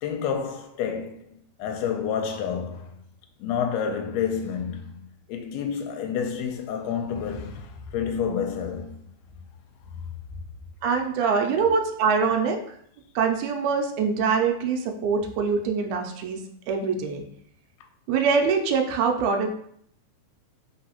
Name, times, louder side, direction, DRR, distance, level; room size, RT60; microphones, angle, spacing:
voice 1, 0.0-3.0 3.4-9.0, left 7 dB, 75° left, 1.8 m, -29 dB
voice 2, 10.8-12.6 13.2-16.4 16.7-17.2 18.1-19.5, right 5 dB, 85° right, 2.0 m, -24 dB
3.9 x 3.7 x 2.8 m
omnidirectional pair, 3.3 m